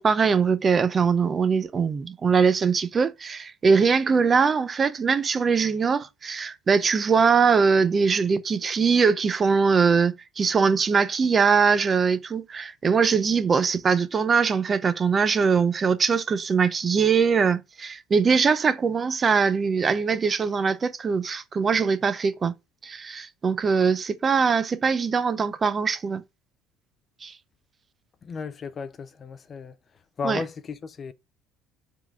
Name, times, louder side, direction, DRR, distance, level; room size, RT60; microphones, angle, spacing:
voice 1, 0.0-22.5 22.8-26.2 27.2-27.3 30.2-30.4, right 5 dB, 25° right, 0.6 m, -22 dB
voice 2, 28.2-29.8 30.2-31.1, left 5 dB, 30° left, 0.4 m, -34 dB
7.1 x 3.8 x 4.4 m
cardioid pair, 145°, 0 cm